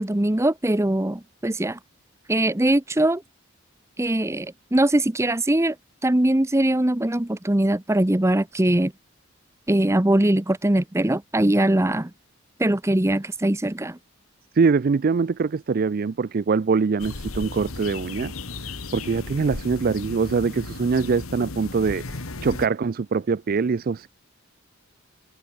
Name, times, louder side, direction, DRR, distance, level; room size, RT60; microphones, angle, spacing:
voice 1, 0.0-1.8 2.3-3.2 4.0-5.8 6.0-8.9 9.7-12.1 12.6-14.0, right 1 dB, 15° right, 0.8 m, -21 dB
voice 2, 14.5-18.3 18.9-24.1, right 5 dB, 45° right, 0.4 m, -23 dB
sound 1, 17.0-22.7, left 3 dB, 90° left, 1.8 m, -35 dB
head